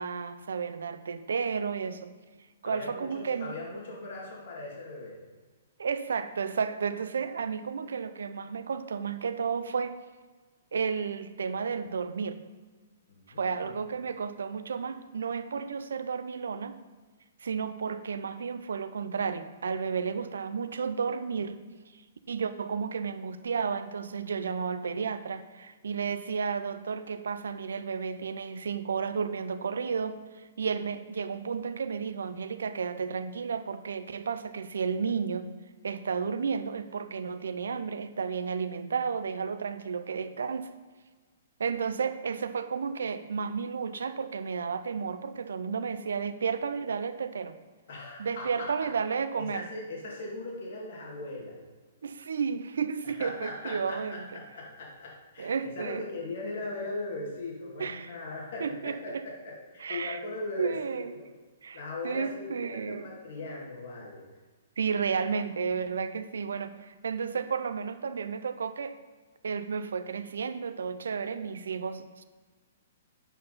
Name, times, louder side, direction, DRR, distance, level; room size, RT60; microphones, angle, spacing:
voice 1, 0.0-2.1 2.6-3.5 5.8-10.0 10.7-12.4 13.4-16.8 17.4-21.6 22.3-35.5 35.8-40.7 41.6-47.6 48.2-49.7 52.0-54.2 55.4-56.0 57.8-58.1 58.6-59.2 59.8-60.2 60.6-61.1 61.6-61.8 62.0-63.1 64.8-68.9 69.4-72.2, right 6 dB, 80° right, 11 dB, 0.5 m, -32 dB
voice 2, 2.6-5.2 13.1-13.8 47.9-48.9 49.4-51.6 53.0-61.3 61.7-64.2, left 2 dB, 65° left, -2 dB, 2.2 m, -39 dB
8.3 x 5.6 x 4.0 m, 1.4 s
hypercardioid pair, 135°, 0 cm